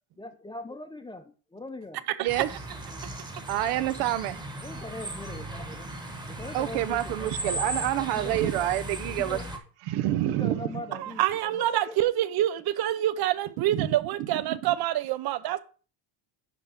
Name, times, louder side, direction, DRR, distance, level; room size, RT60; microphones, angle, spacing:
voice 1, 0.2-2.0 4.6-5.9 6.2-8.7 9.2-9.5 10.3-11.2 11.6-12.1, left 2 dB, 10° left, 0.7 m, -41 dB
voice 2, 2.2-2.5 3.5-4.4 6.3-9.4 9.8-11.0 13.7-13.9 14.2-14.8, right 13 dB, 85° right, 0.9 m, -28 dB
sound 1, 2.3-9.6, right 1 dB, 10° right, 1.2 m, -37 dB
voice 3, 11.0-15.6, right 13 dB, 50° right, 0.7 m, -26 dB
11.0 x 3.7 x 5.8 m
cardioid pair, 155°, 50 cm